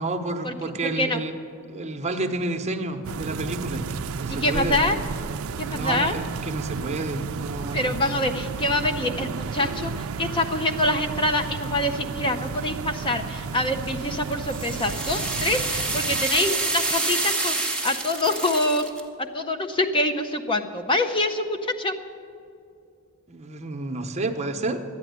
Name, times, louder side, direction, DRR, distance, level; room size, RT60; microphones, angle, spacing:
voice 1, 0.0-1.3 1.7-3.8 4.1-4.8 5.7-7.9 23.3-24.8, right 2 dB, 30° right, 4 dB, 1.0 m, -30 dB
voice 2, 0.8-1.2 4.3-5.0 5.6-6.1 7.7-18.8 19.3-21.9, left 1 dB, 25° left, 5 dB, 0.6 m, -25 dB
sound 1, 3.0-16.3, right 5 dB, 65° right, 0.4 m, -32 dB
sound 2, 13.9-19.0, right 3 dB, 5° left, 1.2 m, -27 dB
13.0 x 10.5 x 9.4 m, 2.5 s
head